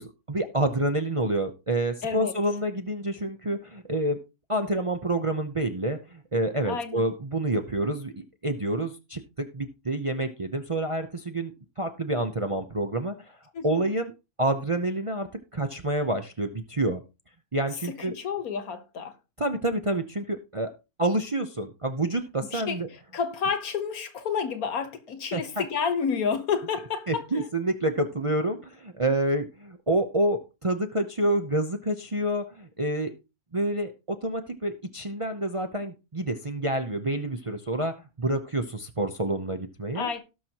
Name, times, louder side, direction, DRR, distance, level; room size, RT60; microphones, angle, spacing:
voice 1, 0.0-4.2 4.5-8.1 8.4-13.4 13.6-14.1 14.4-17.0 17.5-18.1 19.4-20.7 21.0-22.9 25.3-25.6 27.1-33.1 33.5-40.1, right 1 dB, 30° right, 0.7 m, -28 dB
voice 2, 2.0-2.3 6.6-7.1 13.5-13.9 17.8-19.1 22.5-27.5 39.9-40.2, left 6 dB, 70° left, 1.7 m, -30 dB
18.0 x 6.1 x 2.9 m
omnidirectional pair, 1.6 m